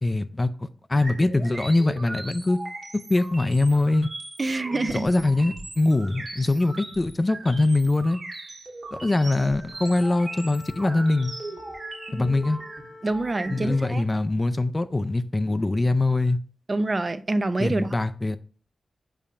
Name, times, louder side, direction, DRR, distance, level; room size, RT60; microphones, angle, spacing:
voice 1, 0.0-2.6 3.1-4.1 4.9-8.2 8.9-11.3 12.1-12.6 13.5-16.4 17.6-18.4, left 2 dB, 25° left, 0.5 m, -23 dB
sound 1, 0.9-13.8, right 2 dB, 50° right, 1.4 m, -39 dB
voice 2, 4.4-5.1 13.0-14.0 16.7-17.9, right 2 dB, 35° right, 0.6 m, -26 dB
Wind instrument woodwind instrument, 9.7-14.0, left 3 dB, 55° left, 0.8 m, -46 dB
6.9 x 5.5 x 2.5 m
cardioid pair, 75°, 0 cm